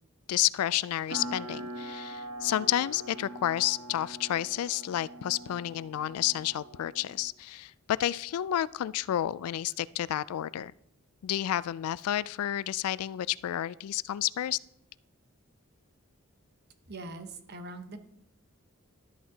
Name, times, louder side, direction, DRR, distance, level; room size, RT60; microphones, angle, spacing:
voice 1, 0.3-10.7 11.2-14.6, left 12 dB, 85° left, 18 dB, 0.3 m, -30 dB
sound 1, 1.1-7.3, right 1 dB, 90° right, 1.1 m, -43 dB
voice 2, 16.9-18.0, right 2 dB, 50° right, 7 dB, 1.0 m, -42 dB
12.5 x 8.5 x 2.8 m, 0.76 s
head